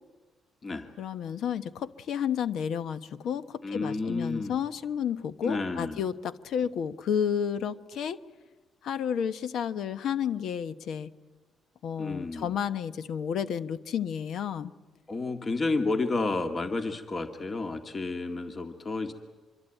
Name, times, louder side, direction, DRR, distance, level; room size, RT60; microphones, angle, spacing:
voice 1, 1.0-8.2 8.8-11.1 11.8-14.7, left 8 dB, 70° left, 12 dB, 1.1 m, -31 dB
voice 2, 3.6-4.6 5.4-6.0 12.0-12.6 15.1-19.1, left 3 dB, 35° left, 6 dB, 2.0 m, -31 dB
25.0 x 23.5 x 9.1 m, 1.2 s
cardioid pair, 90°, 0 cm